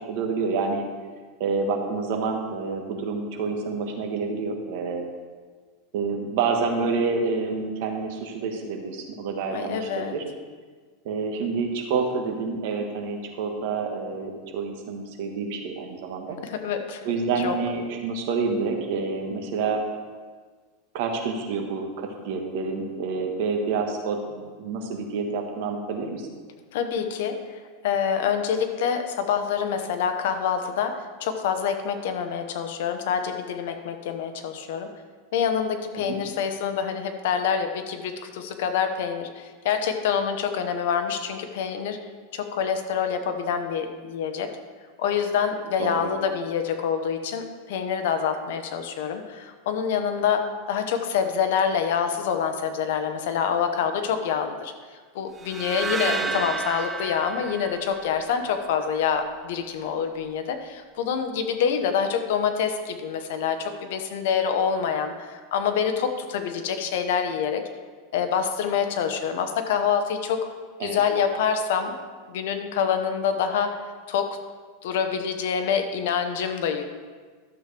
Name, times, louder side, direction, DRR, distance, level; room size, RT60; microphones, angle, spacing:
voice 1, 0.1-0.8 1.4-5.1 5.9-10.2 11.0-16.4 17.0-19.8 20.9-26.3 36.1-36.2 45.8-46.2 56.0-56.4 70.8-71.0, right 4 dB, 55° right, 3 dB, 1.4 m, -28 dB
voice 2, 9.5-10.1 16.4-17.0 17.4-17.6 26.7-34.9 35.3-42.0 42.3-44.5 45.0-54.7 55.1-67.6 68.1-70.5 70.8-72.0 72.3-73.8 74.1-74.4 74.8-76.8, left 7 dB, 65° left, 7 dB, 1.0 m, -26 dB
sound 1, 55.4-58.6, right 3 dB, 15° right, 0.3 m, -32 dB
12.5 x 7.5 x 3.4 m, 1.5 s
supercardioid pair, 160°, 0 cm